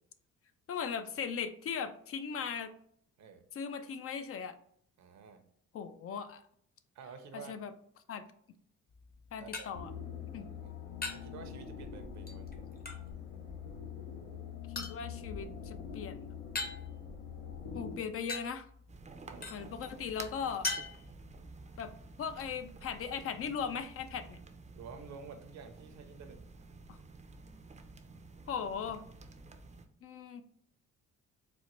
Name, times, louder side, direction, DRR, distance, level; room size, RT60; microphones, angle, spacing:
voice 1, 0.7-2.7 3.5-4.6 5.7-6.4 7.3-7.7 8.1-8.2 9.3-9.9 10.3-10.5 14.8-16.2 17.7-18.7 19.5-20.7 21.8-21.9 22.2-24.4 26.9-27.0 28.5-29.0 30.0-30.4, left 7 dB, 50° left, 10 dB, 0.4 m, -38 dB
voice 2, 5.0-5.4 6.9-7.6 9.4-9.7 10.3-10.8 11.1-12.5 19.2-19.5 24.7-26.4, right 5 dB, 65° right, 7 dB, 0.7 m, -50 dB
sound 1, 8.9-23.2, left 3 dB, 30° left, 0.8 m, -45 dB
sound 2, 9.7-18.0, left 7 dB, 85° left, 0.7 m, -44 dB
sound 3, 18.9-29.9, right 3 dB, 25° right, 0.4 m, -51 dB
4.2 x 2.1 x 2.9 m, 0.66 s
cardioid pair, 90°, 30 cm